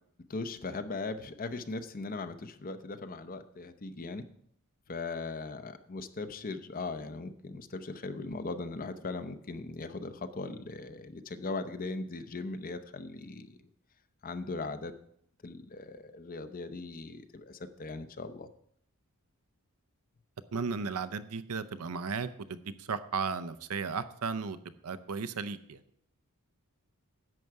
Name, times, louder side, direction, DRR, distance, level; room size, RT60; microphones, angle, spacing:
voice 1, 0.3-4.2 4.9-13.7 14.2-14.9 15.4-18.5, left 3 dB, 40° left, 10 dB, 0.7 m, -39 dB
voice 2, 20.5-24.6 24.8-25.8, right 5 dB, 75° right, 13 dB, 0.6 m, -35 dB
11.0 x 7.7 x 4.7 m, 0.68 s
head